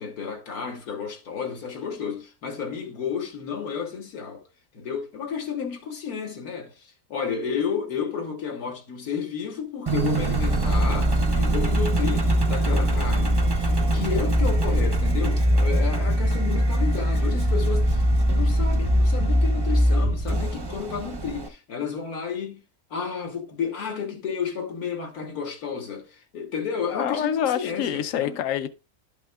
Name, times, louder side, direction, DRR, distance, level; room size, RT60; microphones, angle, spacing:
voice 1, 0.0-4.4 4.7-22.6 22.9-28.4, left 6 dB, 85° left, 1.8 m, -32 dB
Engine, 9.9-21.5, right 1 dB, 30° right, 0.4 m, -22 dB
voice 2, 26.9-28.7, left 9 dB, 70° left, 0.9 m, -26 dB
12.0 x 5.7 x 2.3 m
omnidirectional pair, 1.5 m